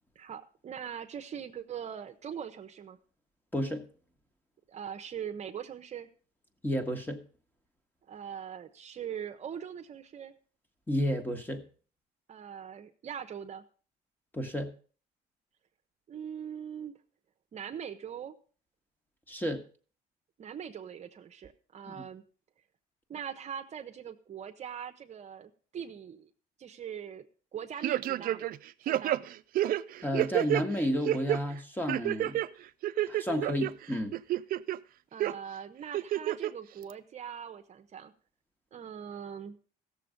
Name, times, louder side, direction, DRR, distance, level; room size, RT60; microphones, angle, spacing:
voice 1, 0.2-3.0 4.7-6.1 8.1-10.3 12.3-13.6 16.1-16.9 17.5-18.3 20.4-22.2 23.1-26.3 26.6-27.3 27.5-28.5 28.8-29.3 35.1-38.1 38.7-39.6, right 8 dB, 40° right, 7 dB, 0.8 m, -41 dB
voice 2, 3.5-3.8 6.6-7.2 10.9-11.6 14.3-14.7 19.3-19.6 21.9-22.0 30.0-32.4 33.1-34.1, equal, 10° left, 6 dB, 1.4 m, -31 dB
sound 1, 27.8-28.6 28.9-30.6 31.0-31.4 31.9-32.5 32.8-33.7 34.1-34.8 35.2-35.3 35.9-36.5 36.9-37.0, right 13 dB, 60° right, 0.5 m, -29 dB
15.0 x 7.1 x 5.2 m, 0.41 s
cardioid pair, 110°, 17 cm